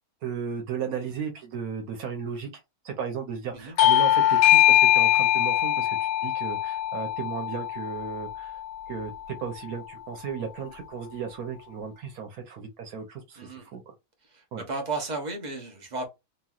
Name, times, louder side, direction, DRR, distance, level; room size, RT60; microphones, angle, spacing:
voice 1, 0.2-2.5 2.8-8.6 8.9-13.9 14.5-14.6, right 6 dB, 85° right, 1.2 m, -35 dB
Bell / Doorbell, 3.8-8.9, left 12 dB, 75° left, 1.0 m, -22 dB
voice 2, 14.3-16.1, right 3 dB, 35° right, 0.9 m, -34 dB
3.0 x 2.6 x 2.3 m
omnidirectional pair, 1.5 m